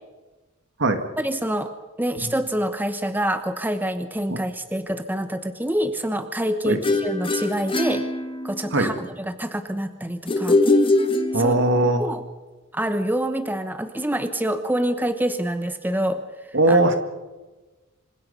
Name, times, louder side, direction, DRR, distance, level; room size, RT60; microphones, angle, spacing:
voice 1, 1.2-1.7 2.0-8.0 8.4-10.6 11.3-11.5 11.8-12.2 12.7-16.2 16.7-16.8, right 1 dB, 10° right, 9 dB, 1.1 m, -26 dB
sound 1, 6.8-8.8 10.3-11.8, left 2 dB, 25° left, 1.9 m, -22 dB
voice 2, 11.3-12.0 16.5-17.0, right 2 dB, 60° right, 7 dB, 2.2 m, -19 dB
26.5 x 26.0 x 5.6 m, 1.2 s
head